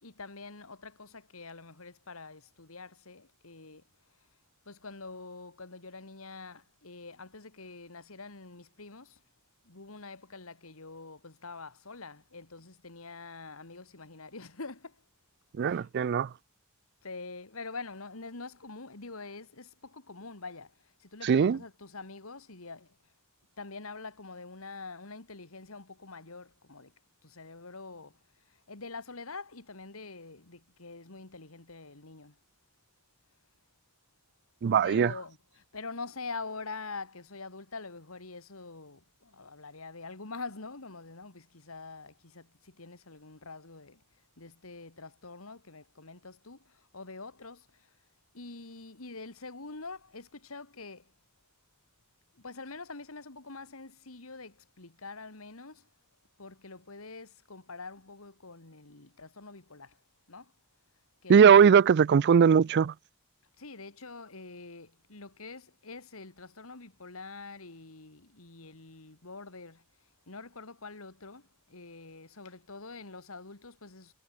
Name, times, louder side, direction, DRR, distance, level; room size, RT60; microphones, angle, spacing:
voice 1, 0.0-3.8 4.7-9.2 9.7-15.0 15.6-15.9 17.0-20.7 21.0-22.9 23.6-26.9 27.2-28.1 28.7-32.3 34.8-44.0 44.4-47.7 48.3-51.0 52.4-55.8 56.4-60.0 60.3-60.5 61.2-61.5 63.6-69.8 70.3-74.1, left 3 dB, 80° left, 2.4 m, -45 dB
voice 2, 15.6-16.3 21.2-21.6 34.6-35.1 61.3-62.9, right 7 dB, 55° right, 0.4 m, -20 dB
head